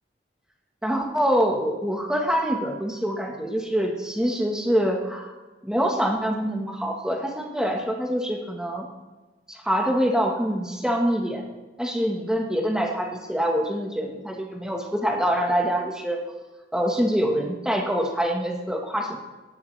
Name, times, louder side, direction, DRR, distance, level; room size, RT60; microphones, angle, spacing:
voice 1, 0.8-5.3 5.6-8.9 9.5-11.4 11.8-16.2 16.7-19.2, equal, 5° right, 1 dB, 1.3 m, -25 dB
16.5 x 12.0 x 3.3 m, 1.2 s
head